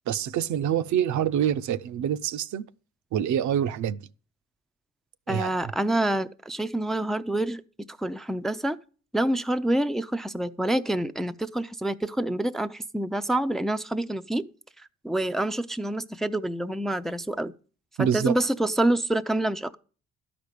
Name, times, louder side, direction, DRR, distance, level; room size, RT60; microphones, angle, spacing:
voice 1, 0.1-2.7 3.1-4.0 5.3-5.5 18.0-18.4, right 9 dB, 70° right, 0.6 m, -26 dB
voice 2, 5.3-8.8 9.1-14.5 15.0-17.5 18.0-19.8, right 1 dB, ahead, 0.4 m, -27 dB
12.0 x 5.2 x 8.2 m
cardioid pair, 90°, 30 cm